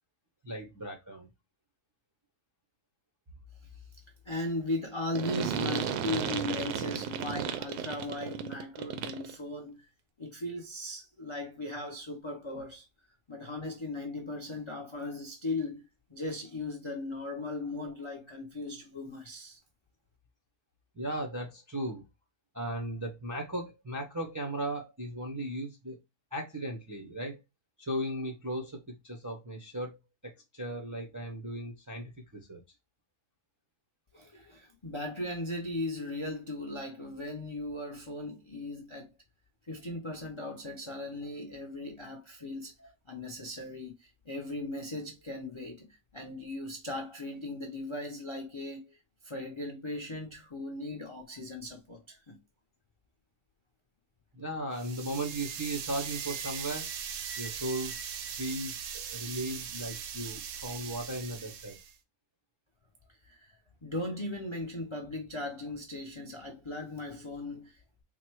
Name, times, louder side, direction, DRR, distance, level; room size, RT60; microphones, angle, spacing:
voice 1, 0.4-1.3 20.9-22.0 22.5-26.0 26.3-27.4 27.8-30.0 30.2-32.6 54.3-56.9 57.4-57.9 58.4-61.8, right 1 dB, 30° right, 0.3 m, -36 dB
voice 2, 4.2-9.9 10.2-12.8 13.3-15.8 16.1-19.6 34.1-39.1 39.7-42.7 43.1-45.9 46.1-49.0 49.2-52.4 63.2-67.8, left 2 dB, 50° left, 0.3 m, -38 dB
sound 1, 5.1-9.3, right 9 dB, 85° right, 1.1 m, -34 dB
sound 2, 54.7-61.9, right 7 dB, 65° right, 0.8 m, -40 dB
3.9 x 2.1 x 4.5 m
omnidirectional pair, 1.6 m